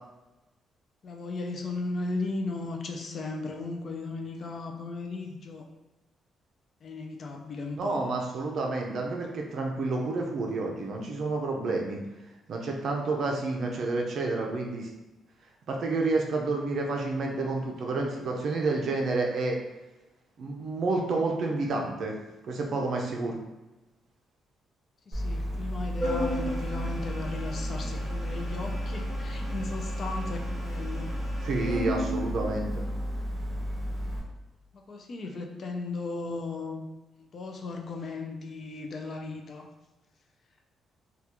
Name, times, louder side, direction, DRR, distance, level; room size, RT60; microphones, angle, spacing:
voice 1, 1.0-5.6 6.8-8.0 25.1-31.1 34.9-36.8 37.2-39.7, left 3 dB, 40° left, 2 dB, 0.3 m, -36 dB
voice 2, 7.8-12.0 12.5-14.9 15.7-19.6 20.4-22.2 22.5-23.4 31.4-32.8, right 3 dB, 50° right, 0 dB, 0.5 m, -29 dB
Organ, 25.1-34.2, equal, 10° right, 1.4 m, -32 dB
3.5 x 2.3 x 2.9 m, 1.0 s
cardioid pair, 170°, 0 cm